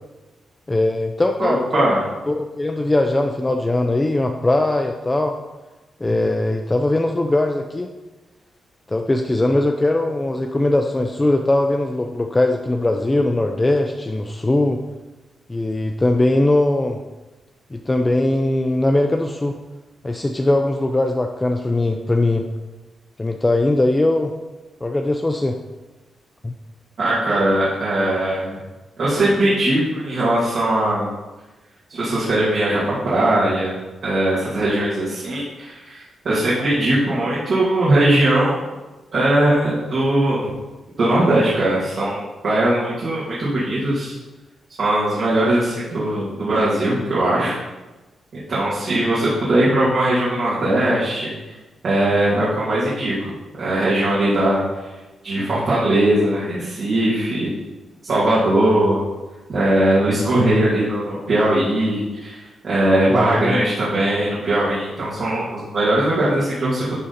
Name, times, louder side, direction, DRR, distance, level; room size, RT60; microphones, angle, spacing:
voice 1, 0.7-1.9 2.3-5.3 6.0-7.9 8.9-14.8 15.5-17.0 17.7-19.6 20.0-22.5 23.2-24.3 24.8-25.6 26.4-26.5 63.1-63.6, left 2 dB, 15° left, 4 dB, 0.4 m, -20 dB
voice 2, 1.4-2.0 27.0-28.6 29.0-31.1 31.9-33.8 34.0-38.6 39.1-40.5 41.0-44.1 44.8-47.6 48.5-51.3 51.8-53.3 53.6-54.6 55.2-57.5 58.0-59.0 59.5-66.9, right 1 dB, 55° right, -10 dB, 2.3 m, -20 dB
11.0 x 3.8 x 4.2 m, 1.1 s
wide cardioid pair, 135°, 0 cm